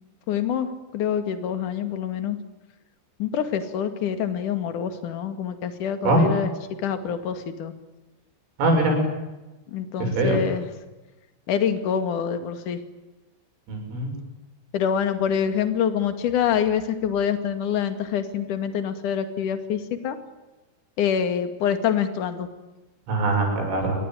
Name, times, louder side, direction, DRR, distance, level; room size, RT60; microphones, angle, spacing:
voice 1, 0.3-0.7 0.9-2.4 3.2-6.5 6.8-7.7 9.7-10.7 11.5-12.8 14.7-20.2 21.0-22.5, left 8 dB, 50° left, 8 dB, 3.0 m, -26 dB
voice 2, 8.6-8.9 10.0-10.4 13.7-14.1 23.1-24.0, right 2 dB, 75° right, 2 dB, 9.5 m, -22 dB
28.5 x 23.0 x 9.2 m, 1.1 s
omnidirectional pair, 5.7 m